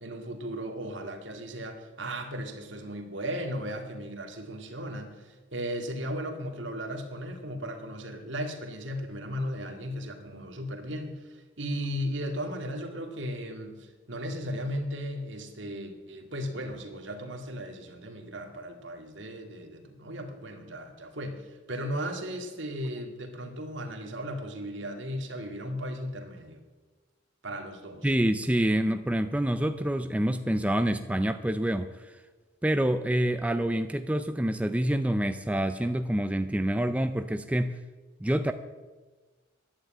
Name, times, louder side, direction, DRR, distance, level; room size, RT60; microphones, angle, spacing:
voice 1, 0.0-26.6 27.4-28.1, equal, 65° right, 4 dB, 2.0 m, -36 dB
voice 2, 28.0-32.1 32.6-37.8 38.2-38.5, right 1 dB, 5° right, 8 dB, 0.4 m, -27 dB
11.5 x 9.4 x 8.7 m, 1.3 s
head